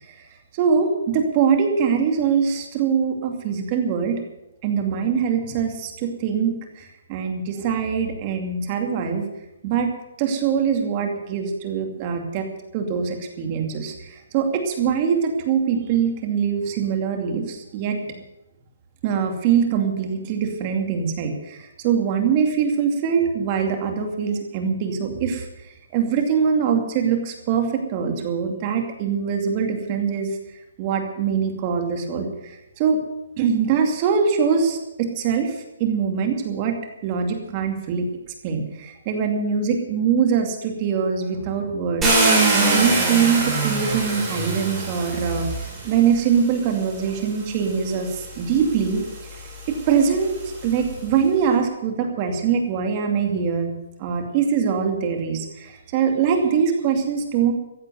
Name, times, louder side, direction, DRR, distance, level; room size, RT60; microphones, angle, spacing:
voice 1, 0.5-4.2 4.6-9.3 9.6-9.9 10.2-12.5 12.7-18.2 19.0-25.5 25.9-30.3 30.8-33.0 33.4-36.7 37.0-38.1 38.4-42.1 42.5-45.5 45.8-49.0 49.7-53.7 54.0-57.5, right 6 dB, 25° right, 4 dB, 2.5 m, -23 dB
Car, 42.0-46.1 47.1-47.2 47.7-51.0, right 3 dB, 10° right, 4.4 m, -24 dB
15.0 x 8.2 x 9.4 m, 0.93 s
hypercardioid pair, 165°, 0 cm